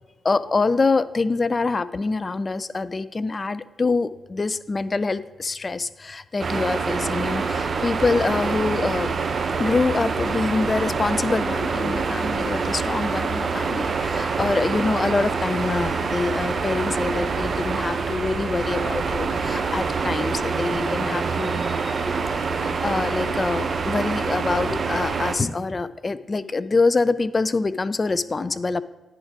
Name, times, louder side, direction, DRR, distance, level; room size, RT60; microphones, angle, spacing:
voice 1, 0.2-9.1 9.6-21.9 22.5-28.8, left 3 dB, 40° left, 16 dB, 0.3 m, -25 dB
sound 1, 6.4-25.3, right 5 dB, 50° right, 0.6 m, -26 dB
sound 2, 8.5-26.0, equal, 90° left, 1.0 m, -48 dB
10.0 x 4.0 x 4.8 m, 1.1 s
supercardioid pair, 45°, 0 cm